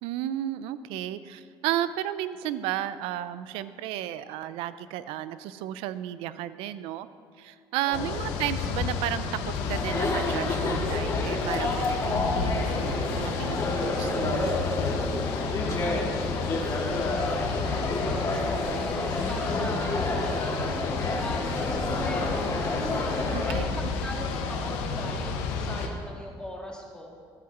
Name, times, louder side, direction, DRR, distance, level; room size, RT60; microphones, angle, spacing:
voice 1, 0.0-7.1 7.4-14.5 23.3-23.6, right 12 dB, 85° right, 14 dB, 0.6 m, -33 dB
sound 1, 7.9-25.9, left 5 dB, 90° left, 1.3 m, -31 dB
voice 2, 7.9-8.3 15.8-20.6 21.2-23.1 23.4-27.1, left 1 dB, 10° left, -2 dB, 2.9 m, -40 dB
Chatter, 9.5-23.7, left 2 dB, 35° left, 3.7 m, -30 dB
14.0 x 13.5 x 4.3 m, 2.1 s
supercardioid pair, 85°, 9 cm